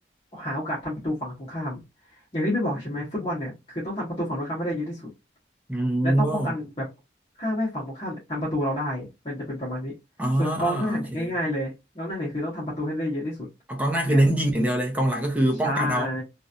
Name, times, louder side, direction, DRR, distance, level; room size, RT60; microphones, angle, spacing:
voice 1, 0.3-1.8 2.1-5.1 6.0-6.9 7.4-9.9 10.4-13.4 14.1-14.2 15.6-16.2, equal, 30° left, 1.2 m, -29 dB
voice 2, 5.7-6.5 10.2-11.3 13.7-16.1, right 1 dB, 10° right, 0.7 m, -24 dB
3.0 x 2.6 x 2.5 m
head